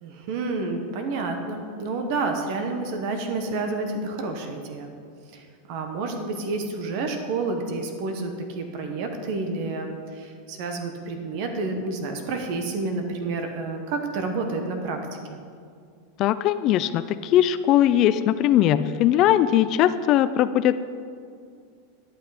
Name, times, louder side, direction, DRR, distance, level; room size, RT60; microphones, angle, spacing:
voice 1, 0.0-4.9 5.3-15.0 15.3-15.4, right 3 dB, 60° right, 5 dB, 1.1 m, -29 dB
voice 2, 16.2-20.8, left 11 dB, 45° left, 13 dB, 0.3 m, -20 dB
11.0 x 5.9 x 4.9 m, 2.3 s
hypercardioid pair, 115°, 0 cm